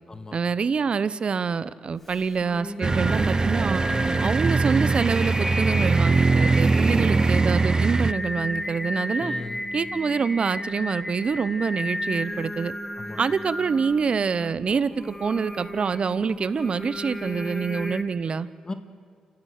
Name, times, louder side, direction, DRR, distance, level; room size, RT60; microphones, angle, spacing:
voice 1, 0.3-3.8 4.2-9.3 9.7-12.7 13.2-18.5, right 5 dB, 55° right, 17 dB, 0.9 m, -26 dB
Singing, 2.1-18.0, left 1 dB, 10° left, 2.5 m, -33 dB
sound 1, 2.8-8.1, right 3 dB, 35° right, 0.6 m, -22 dB
voice 2, 3.9-4.3 6.9-7.2 9.2-9.7 13.0-13.2 18.6-18.7, left 2 dB, 30° left, 9 dB, 1.9 m, -36 dB
28.5 x 15.5 x 6.7 m, 2.3 s
cardioid pair, 60°, 2 cm